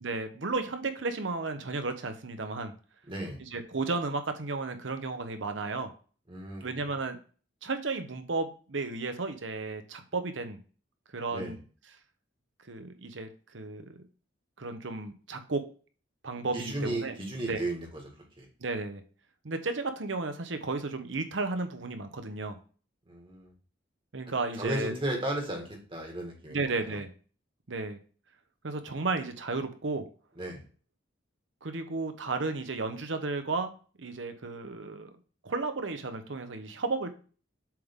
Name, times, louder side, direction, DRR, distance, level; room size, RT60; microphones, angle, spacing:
voice 1, 0.0-2.7 3.4-5.9 6.6-7.2 7.6-10.6 11.1-11.6 12.7-13.3 13.5-14.0 14.6-15.6 16.2-17.2 17.5-17.6 18.6-19.0 19.4-22.6 24.1-24.9 26.5-27.1 27.7-28.0 28.6-30.1 31.6-33.7 34.0-35.1 35.4-37.1, right 3 dB, 80° right, 8 dB, 0.9 m, -33 dB
voice 2, 3.1-3.4 6.3-6.6 11.3-11.6 16.5-18.0 18.4-18.5 23.1-23.5 24.6-26.6 26.8-27.0 30.4-30.6, right 1 dB, 25° right, 0 dB, 1.9 m, -34 dB
7.5 x 3.7 x 3.7 m, 0.38 s
head